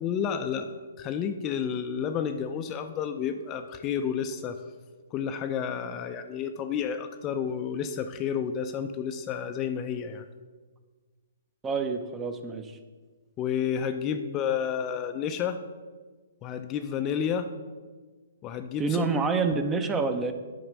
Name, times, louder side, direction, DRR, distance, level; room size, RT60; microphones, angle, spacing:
voice 1, 0.0-4.6 5.1-10.2 13.4-15.6 16.4-17.5 18.4-19.1, left 7 dB, 25° left, 8 dB, 0.5 m, -30 dB
voice 2, 11.6-12.8 18.8-20.3, right 4 dB, 15° right, 8 dB, 0.7 m, -27 dB
8.7 x 5.0 x 6.1 m, 1.4 s
hypercardioid pair, 135°, 0 cm